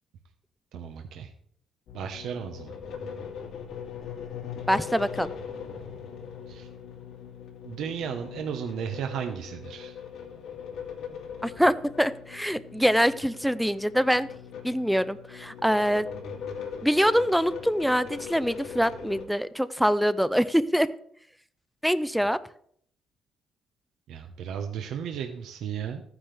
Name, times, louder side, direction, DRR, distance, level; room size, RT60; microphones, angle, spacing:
voice 1, 0.7-1.3 1.9-2.7 6.5-6.7 7.6-10.0 24.1-26.0, right 8 dB, 75° right, 5 dB, 1.0 m, -34 dB
sound 1, 1.9-19.2, left 7 dB, 75° left, 2.6 m, -40 dB
voice 2, 4.7-5.3 11.4-14.3 14.6-16.1 16.8-20.9 21.8-22.4, equal, ahead, 14 dB, 0.4 m, -24 dB
14.5 x 9.8 x 3.4 m, 0.63 s
cardioid pair, 145°, 0 cm